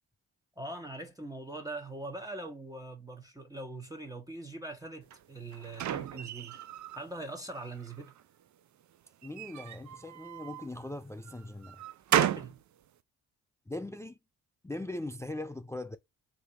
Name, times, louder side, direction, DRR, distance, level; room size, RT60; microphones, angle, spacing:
voice 1, 0.6-6.5 6.9-8.2 12.1-12.6, right 2 dB, 10° right, 1.1 m, -42 dB
sound 1, 5.1-7.0 7.5-8.2 9.2-10.7 11.3-12.6, right 11 dB, 45° right, 0.5 m, -33 dB
voice 2, 9.2-11.8 13.7-14.2 14.6-16.0, left 1 dB, 5° left, 0.4 m, -40 dB
3.5 x 2.9 x 4.2 m
hypercardioid pair, 45°, 42 cm